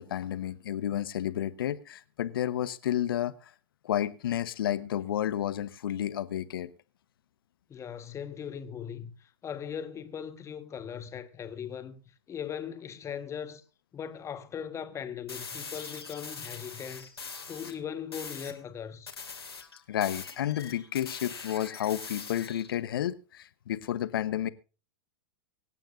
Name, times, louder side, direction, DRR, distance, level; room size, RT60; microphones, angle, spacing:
voice 1, 0.0-3.5 3.8-6.7 19.9-24.5, left 11 dB, 65° left, 1.0 m, -31 dB
voice 2, 7.7-13.6 13.9-17.1 17.5-19.1, left 8 dB, 20° left, 1.4 m, -39 dB
sound 1, 15.3-17.8 18.1-18.6 19.1-22.8, left 5 dB, 85° left, 2.4 m, -42 dB
25.0 x 9.0 x 2.6 m
figure-of-eight pair, 100°, 13 cm